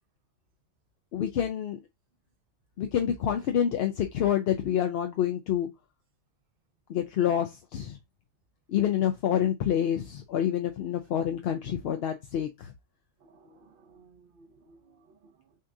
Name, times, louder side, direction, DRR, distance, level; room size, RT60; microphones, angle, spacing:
voice 1, 1.1-1.8 2.8-5.7 6.9-8.0 8.7-12.7, left 10 dB, 65° left, 0.7 m, -27 dB
voice 2, 13.2-15.6, right 3 dB, 50° right, 0.8 m, -58 dB
6.4 x 2.4 x 2.6 m
omnidirectional pair, 1.3 m